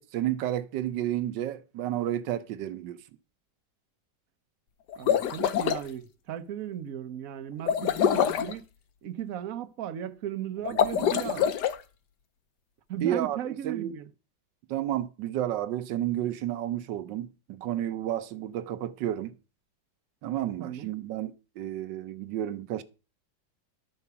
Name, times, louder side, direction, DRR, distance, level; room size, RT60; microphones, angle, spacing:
voice 1, 0.0-3.0 10.7-11.1 13.0-13.4 13.6-13.9 14.7-19.3 20.2-22.8, right 12 dB, 85° right, 1.4 m, -31 dB
sound 1, 4.9-5.8 7.7-8.5 10.7-11.8, left 8 dB, 70° left, 1.4 m, -25 dB
voice 2, 5.0-8.6 9.0-11.5 12.9-14.1 20.6-20.9, right 10 dB, 55° right, 1.2 m, -36 dB
12.0 x 4.7 x 6.8 m
omnidirectional pair, 1.9 m